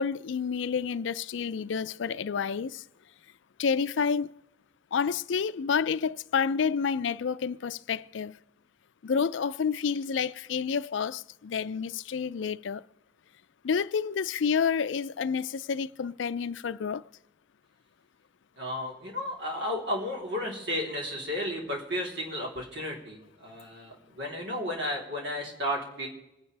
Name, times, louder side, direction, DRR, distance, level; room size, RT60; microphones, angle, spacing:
voice 1, 0.0-2.8 3.6-4.3 4.9-8.4 9.0-12.8 13.6-17.0, left 6 dB, 75° left, 0.4 m, -29 dB
voice 2, 18.6-26.1, left 1 dB, 60° right, 3.6 m, -33 dB
26.5 x 10.5 x 3.4 m
head